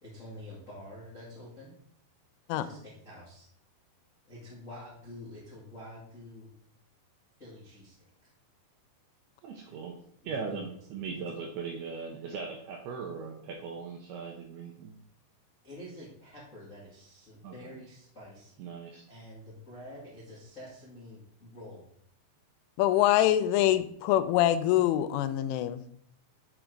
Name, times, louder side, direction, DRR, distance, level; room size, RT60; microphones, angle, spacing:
voice 1, 0.0-1.7 2.5-3.5 4.2-6.5 7.4-8.0 8.2-8.3 10.2-10.7 11.1-11.2 15.6-18.5 19.1-21.9, left 1 dB, 60° left, -6 dB, 0.8 m, -47 dB
voice 2, 9.4-10.0 10.2-14.9 17.4-17.8 18.6-19.1, right 5 dB, 75° right, 1 dB, 2.3 m, -39 dB
voice 3, 22.8-25.8, left 12 dB, 90° left, 12 dB, 3.1 m, -24 dB
11.0 x 3.9 x 4.6 m, 0.65 s
omnidirectional pair, 5.5 m